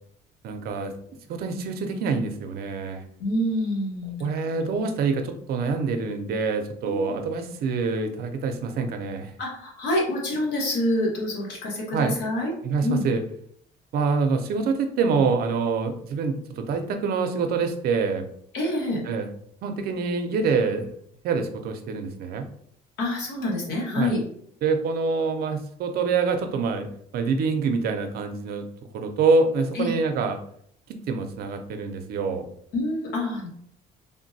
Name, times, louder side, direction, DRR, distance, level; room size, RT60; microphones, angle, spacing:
voice 1, 0.4-0.9 1.3-3.0 4.2-9.3 11.9-12.2 12.6-13.2 13.9-18.2 19.1-19.3 19.6-20.9 21.2-22.5 24.0-24.1 24.6-26.9 27.1-28.6 28.9-30.3 31.1-32.4, right 4 dB, 65° right, 6 dB, 0.5 m, -25 dB
voice 2, 3.2-4.4 4.7-4.8 6.8-7.1 9.4-12.5 12.8-13.0 18.5-19.0 23.0-24.2 29.7-29.9 32.7-33.5, left 1 dB, 85° left, -2 dB, 1.2 m, -27 dB
3.3 x 2.2 x 2.6 m, 0.67 s
cardioid pair, 110°, 17 cm